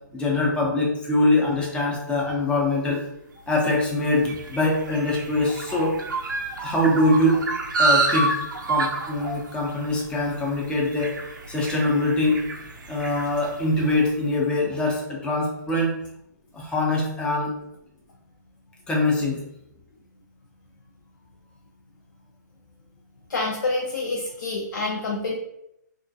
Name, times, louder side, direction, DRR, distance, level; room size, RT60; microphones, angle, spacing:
voice 1, 0.1-3.0 3.5-6.0 6.6-7.4 7.8-8.4 8.7-11.1 11.5-12.4 12.9-15.9 16.5-17.5 18.9-19.4, left 2 dB, 10° left, -2 dB, 0.5 m, -23 dB
sound 1, 3.6-14.2, right 3 dB, 85° right, 0.4 m, -29 dB
voice 2, 23.3-25.3, left 3 dB, 80° left, -1 dB, 0.5 m, -27 dB
2.3 x 2.1 x 2.6 m, 0.80 s
hypercardioid pair, 140°, 10 cm